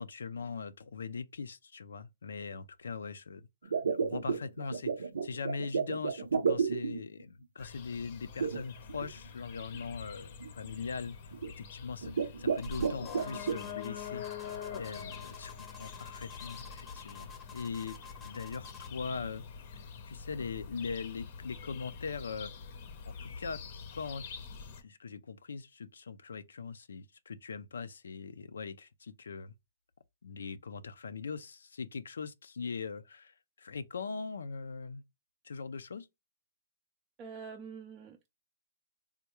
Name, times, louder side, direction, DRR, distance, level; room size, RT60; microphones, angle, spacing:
voice 1, 0.0-11.2 11.5-14.2 14.7-22.5 23.1-23.6 23.9-24.4 24.8-29.5 30.2-35.0 35.4-36.1, left 5 dB, 90° left, 0.4 m, -41 dB
sound 1, 3.7-7.2 8.4-9.1 9.7-9.8 10.4-10.7 11.3-11.6 12.0-13.6, right 5 dB, 90° right, 0.5 m, -32 dB
sound 2, 7.6-24.8, left 6 dB, 50° left, 0.6 m, -45 dB
sound 3, 12.6-19.0, left 7 dB, 5° left, 0.7 m, -50 dB
voice 2, 37.2-38.3, right 5 dB, 25° right, 0.4 m, -45 dB
3.5 x 2.2 x 2.9 m
hypercardioid pair, 145°, 0 cm